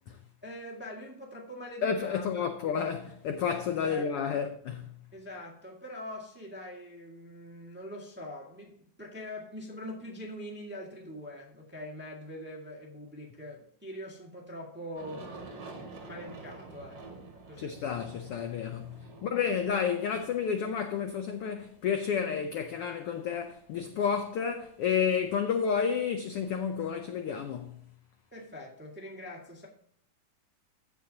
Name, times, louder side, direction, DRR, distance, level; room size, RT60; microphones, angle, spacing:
voice 1, 0.4-2.5 3.8-4.5 5.1-15.3 16.0-17.8 28.3-29.7, left 1 dB, 5° right, 1.1 m, -43 dB
voice 2, 1.8-4.9 17.6-27.8, left 7 dB, 80° left, 1.3 m, -31 dB
Aircraft, 15.0-21.7, right 3 dB, 40° right, 2.3 m, -48 dB
15.0 x 6.2 x 2.8 m
omnidirectional pair, 3.4 m